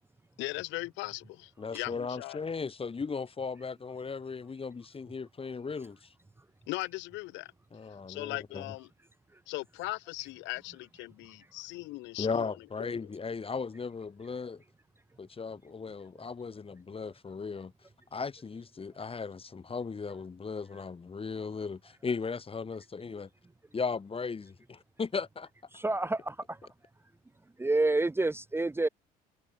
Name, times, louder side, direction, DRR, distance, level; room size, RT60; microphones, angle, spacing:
voice 1, 0.4-2.4 6.7-7.5 8.1-8.9 9.5-12.5 12.8-13.0, left 20 dB, 70° left, 6.7 m, -38 dB
voice 2, 1.6-6.1 7.7-8.6 12.2-14.6 15.2-17.7 18.1-23.3 23.7-25.5, left 5 dB, 30° left, 3.7 m, -37 dB
voice 3, 25.8-26.3 27.6-28.9, right 2 dB, 10° right, 0.9 m, -28 dB
hypercardioid pair, 65°, 20 cm